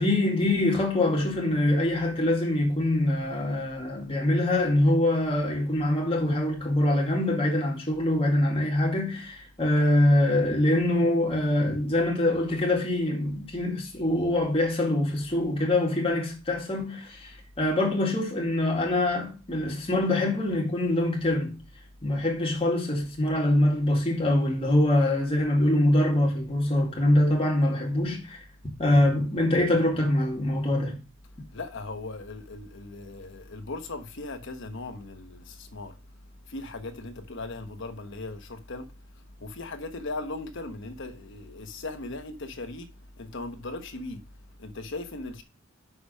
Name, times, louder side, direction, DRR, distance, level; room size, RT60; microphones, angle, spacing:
voice 1, 0.0-17.3 17.6-21.6 22.0-28.4 28.8-31.0, left 1 dB, 25° left, 2.1 m, -24 dB
voice 2, 31.5-36.0 36.5-38.9 39.4-42.9 43.2-44.2 44.6-45.4, left 2 dB, 60° left, 1.1 m, -38 dB
6.1 x 4.8 x 6.4 m
head